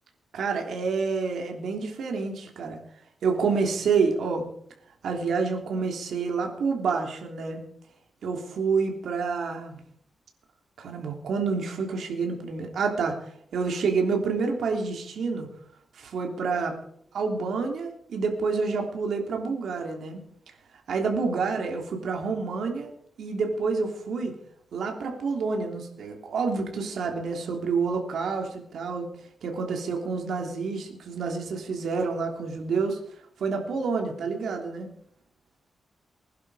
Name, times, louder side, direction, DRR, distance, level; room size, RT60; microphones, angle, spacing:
voice 1, 0.3-2.8 3.2-4.5 5.0-7.6 8.2-9.8 10.8-13.1 13.5-15.5 15.9-16.8 17.1-20.2 20.9-22.9 23.2-24.3 24.7-29.1 29.4-33.0 33.4-34.9, right 4 dB, 70° right, 3 dB, 3.3 m, -28 dB
20.5 x 11.0 x 5.0 m, 0.66 s
wide cardioid pair, 145°, 0 cm